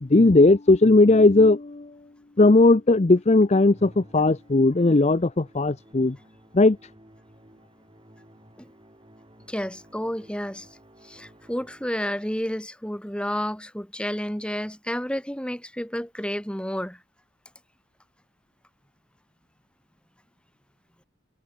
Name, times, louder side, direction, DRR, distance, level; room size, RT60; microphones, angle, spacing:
voice 1, 0.0-1.9 2.4-6.2 6.5-6.8, left 2 dB, 35° left, 0.6 m, -17 dB
Musical instrument, 3.6-12.2, equal, 25° right, 7.8 m, -53 dB
voice 2, 9.5-10.7 11.0-17.0, equal, 5° left, 3.2 m, -30 dB
head